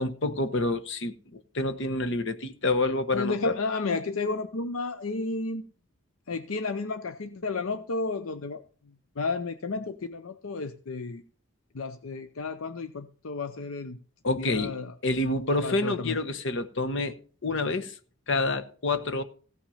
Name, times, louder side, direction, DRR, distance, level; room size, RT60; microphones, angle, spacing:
voice 1, 0.0-3.5 14.2-14.7 15.0-17.2 17.4-17.9 18.3-19.2, left 2 dB, 60° left, 1.0 m, -28 dB
voice 2, 3.1-5.6 6.3-8.6 9.2-11.2 11.7-14.0 14.4-14.9 15.6-16.2, left 3 dB, 75° left, 0.6 m, -32 dB
16.0 x 5.9 x 5.6 m
head